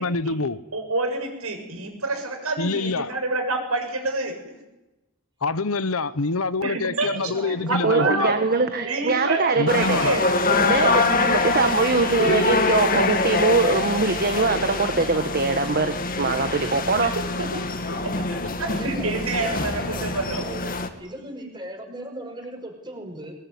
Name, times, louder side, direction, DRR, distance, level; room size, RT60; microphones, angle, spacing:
voice 1, 0.0-0.6 2.6-3.2 5.4-8.4 9.6-10.2 12.3-12.5 18.4-18.7, left 3 dB, 70° left, 1.0 m, -26 dB
voice 2, 0.7-4.6 6.6-7.1 7.5-8.5 8.8-10.2 10.5-10.7 17.9-18.0 18.6-20.4, right 3 dB, 75° right, 7.2 m, -28 dB
voice 3, 7.0-9.0 18.6-20.7 21.0-23.3, right 1 dB, 20° right, 5.6 m, -38 dB
voice 4, 7.8-10.0 10.6-17.1, right 4 dB, 45° right, 1.4 m, -22 dB
sound 1, 9.7-20.9, left 3 dB, 40° left, 2.2 m, -24 dB
22.5 x 21.5 x 9.6 m
head